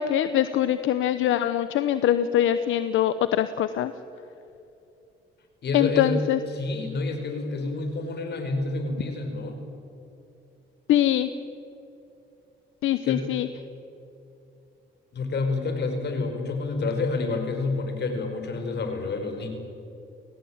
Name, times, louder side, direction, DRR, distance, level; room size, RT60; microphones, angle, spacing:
voice 1, 0.0-3.9 5.7-6.4 10.9-11.3 12.8-13.5, left 11 dB, 80° left, 12 dB, 0.9 m, -23 dB
voice 2, 5.6-6.2 6.5-9.6 13.0-13.3 15.1-19.5, left 3 dB, 60° left, 6 dB, 4.9 m, -28 dB
29.5 x 17.5 x 8.8 m, 2.7 s
cardioid pair, 90°, 20 cm